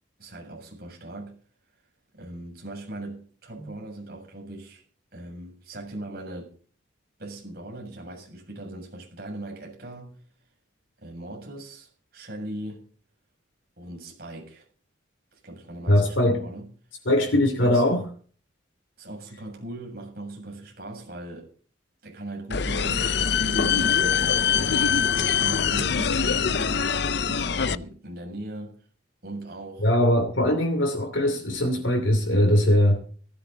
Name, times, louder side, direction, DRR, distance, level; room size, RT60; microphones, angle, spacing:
voice 1, 0.2-1.4 2.1-4.8 5.1-6.6 7.2-10.2 11.0-12.8 13.8-14.7 15.3-16.7 17.6-18.0 19.0-21.5 22.0-24.3 24.9-28.8 29.2-29.9, right 1 dB, 50° right, 7.2 m, -39 dB
voice 2, 15.9-16.5 17.1-18.0 29.8-33.0, left 1 dB, 80° left, 2.9 m, -21 dB
sound 1, 22.5-27.8, left 7 dB, 55° left, 0.6 m, -23 dB
18.5 x 14.5 x 4.0 m
head